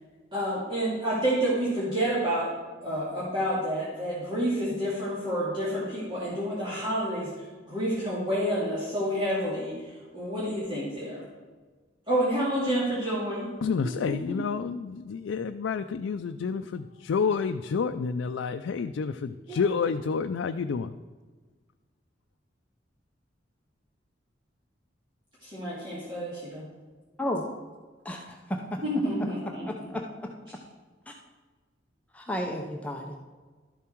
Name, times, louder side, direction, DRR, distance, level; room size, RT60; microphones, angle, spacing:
voice 1, 0.3-2.5 2.8-7.3 7.7-11.2 12.1-13.5 19.5-19.6 25.4-26.6 28.8-29.7, equal, 30° right, -9 dB, 2.5 m, -29 dB
voice 2, 13.6-21.0, left 5 dB, 85° left, 8 dB, 0.4 m, -29 dB
voice 3, 28.0-28.8 29.2-29.3 29.6-30.0 31.1-31.2 32.1-33.2, left 1 dB, 10° left, 1 dB, 0.6 m, -33 dB
12.5 x 7.2 x 4.5 m, 1.4 s
head